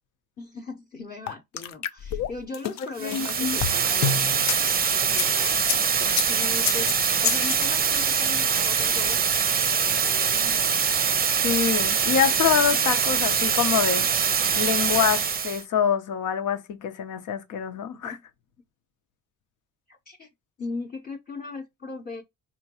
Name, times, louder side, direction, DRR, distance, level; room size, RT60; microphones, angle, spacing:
voice 1, 0.4-6.9 7.2-9.2 9.5-10.6 17.9-18.2 19.9-20.3 20.6-22.2, left 3 dB, 30° left, 0.8 m, -39 dB
sound 1, 1.3-4.6 5.1-7.6, left 8 dB, 65° left, 0.6 m, -29 dB
voice 2, 3.0-3.6 11.4-14.0 14.5-18.2, left 8 dB, 85° left, 0.9 m, -25 dB
sound 2, 3.0-15.6, right 6 dB, 30° right, 0.5 m, -23 dB
4.4 x 3.0 x 2.9 m
cardioid pair, 145°, 30 cm